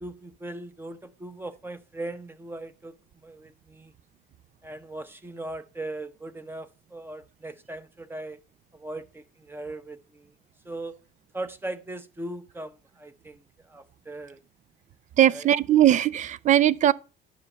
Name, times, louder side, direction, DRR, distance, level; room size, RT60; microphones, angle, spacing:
voice 1, 0.0-3.9 4.6-8.4 8.7-10.3 10.6-11.0 11.3-14.4 15.2-15.5, right 2 dB, 15° right, 0.9 m, -39 dB
voice 2, 15.2-16.9, right 11 dB, 45° right, 0.5 m, -19 dB
9.7 x 6.5 x 4.1 m
cardioid pair, 110°, 17 cm